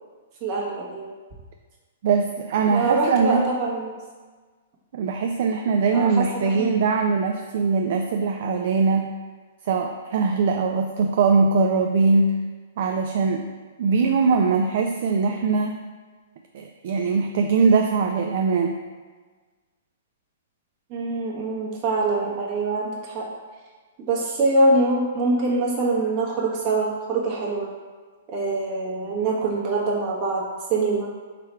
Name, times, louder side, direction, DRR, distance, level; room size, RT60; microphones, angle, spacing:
voice 1, 0.4-1.1 2.7-4.0 5.9-6.7 20.9-23.3 24.1-27.7 28.3-30.4 30.7-31.1, right 2 dB, 45° right, -3 dB, 1.2 m, -24 dB
voice 2, 2.0-3.4 4.9-9.1 9.7-12.4 12.8-13.5 13.8-15.8 16.5-18.8, right 4 dB, 60° right, 4 dB, 0.3 m, -21 dB
3.7 x 3.3 x 4.4 m, 1.4 s
hypercardioid pair, 120°, 0 cm